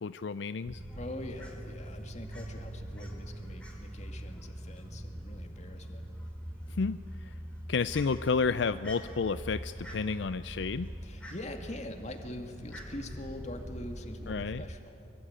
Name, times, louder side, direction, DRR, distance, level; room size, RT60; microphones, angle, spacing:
voice 1, 0.0-0.8 6.7-7.3 7.7-10.9 14.3-14.6, left 5 dB, 75° left, 13 dB, 0.5 m, -31 dB
sound 1, 0.7-14.8, right 1 dB, 15° right, 1.2 m, -43 dB
Fowl, 0.8-14.4, equal, 5° left, 4.4 m, -55 dB
voice 2, 0.9-6.1 11.0-15.1, left 1 dB, 40° left, 4 dB, 2.3 m, -43 dB
24.5 x 23.0 x 8.9 m, 3.0 s
head